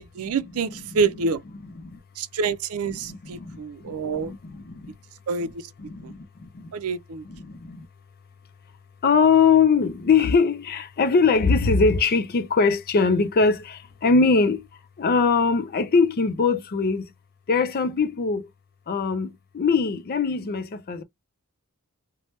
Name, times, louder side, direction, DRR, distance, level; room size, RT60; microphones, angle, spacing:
voice 1, 0.0-1.4 2.2-4.3 5.3-5.7 6.0-6.1 6.7-7.2, right 4 dB, 70° right, 0.5 m, -27 dB
voice 2, 2.9-4.9 5.8-6.7 7.2-7.9 9.0-14.7 15.0-17.1 17.5-18.5 18.9-21.0, left 5 dB, 45° left, 0.4 m, -22 dB
3.1 x 2.1 x 2.9 m
head